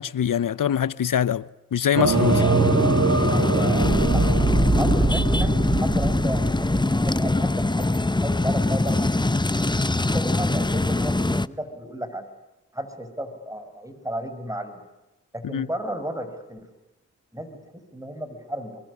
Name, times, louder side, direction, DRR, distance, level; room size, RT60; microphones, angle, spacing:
voice 1, 0.0-2.4 15.4-15.7, left 9 dB, 75° left, 0.9 m, -24 dB
sound 1, 2.0-7.6, right 4 dB, 50° right, 1.9 m, -23 dB
sound 2, 2.1-11.5, left 2 dB, 15° left, 0.9 m, -23 dB
voice 2, 3.3-6.7 7.0-7.9 8.2-9.4 9.8-12.3 12.7-14.8 15.3-16.7 17.3-17.6 17.9-18.8, equal, 10° right, 6.2 m, -33 dB
24.5 x 23.5 x 9.8 m
cardioid pair, 50°, 33 cm